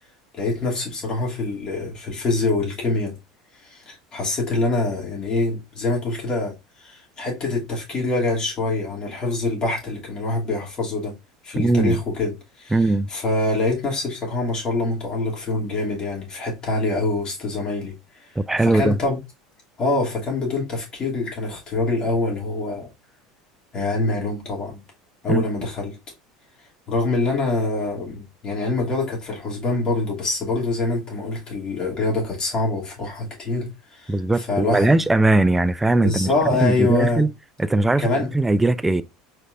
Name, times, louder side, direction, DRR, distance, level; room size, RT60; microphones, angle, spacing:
voice 1, 0.3-3.2 3.6-11.1 11.4-17.9 18.2-18.3 18.6-19.2 19.8-22.9 23.7-24.8 25.2-26.0 26.9-34.9 36.0-37.2 38.0-38.3, left 2 dB, 35° left, 2.6 m, -25 dB
voice 2, 11.6-12.0 12.7-13.1 18.4-19.0 25.3-25.4 34.1-36.3 36.6-37.3 37.6-38.1 38.3-39.0, right 2 dB, 10° right, 0.4 m, -19 dB
4.6 x 4.4 x 2.5 m
figure-of-eight pair, 75°, 2 cm